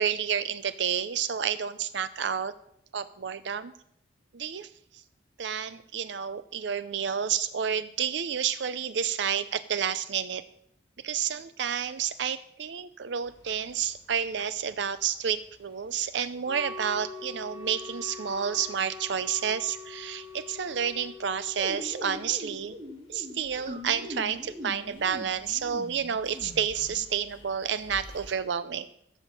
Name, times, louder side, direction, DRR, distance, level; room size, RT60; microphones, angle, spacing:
voice 1, 0.0-2.5 2.9-3.7 4.3-5.0 5.4-10.4 11.0-22.8 23.1-28.9, right 8 dB, 65° right, 14 dB, 0.5 m, -30 dB
sound 1, 13.2-28.3, left 1 dB, 30° left, 3.8 m, -56 dB
Wind instrument woodwind instrument, 16.4-22.3, left 3 dB, 15° right, 2.8 m, -43 dB
sound 2, 21.6-27.1, equal, 35° right, 1.9 m, -41 dB
15.5 x 7.2 x 7.3 m, 0.73 s
head